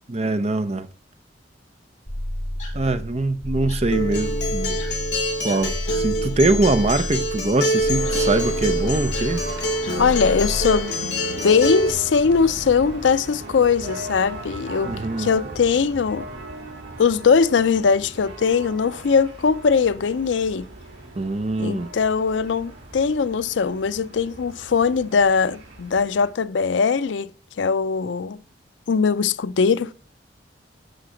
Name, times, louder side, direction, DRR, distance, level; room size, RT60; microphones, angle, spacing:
voice 1, 0.1-0.9 2.7-4.8 5.4-9.5 14.9-15.3 21.2-21.9, right 2 dB, 35° right, 0.7 m, -23 dB
sound 1, 2.1-10.8, equal, 40° left, 5.5 m, -30 dB
Acoustic guitar, 3.9-11.9, equal, 65° left, 1.8 m, -25 dB
sound 2, 7.9-26.3, right 2 dB, 80° right, 3.6 m, -38 dB
voice 2, 10.0-16.3 17.0-20.7 21.6-27.3 27.6-28.4 28.9-29.9, left 5 dB, 85° left, 0.5 m, -21 dB
11.5 x 5.7 x 5.0 m
head